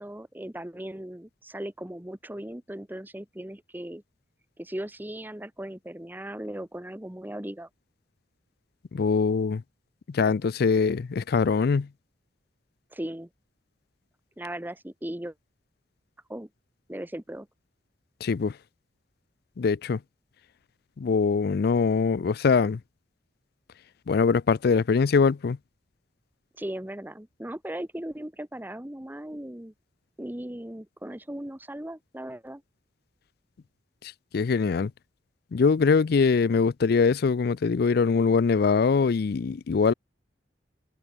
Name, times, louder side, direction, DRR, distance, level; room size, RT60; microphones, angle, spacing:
voice 1, 0.0-4.0 4.6-7.7 12.9-13.3 14.4-15.3 16.3-16.5 16.9-17.5 26.6-29.7 30.2-32.6, right 1 dB, 10° right, 1.0 m, -37 dB
voice 2, 8.9-9.6 10.1-11.9 18.2-18.5 19.6-20.0 21.0-22.8 24.1-25.6 34.3-34.9 35.5-39.9, left 5 dB, 60° left, 0.4 m, -23 dB
head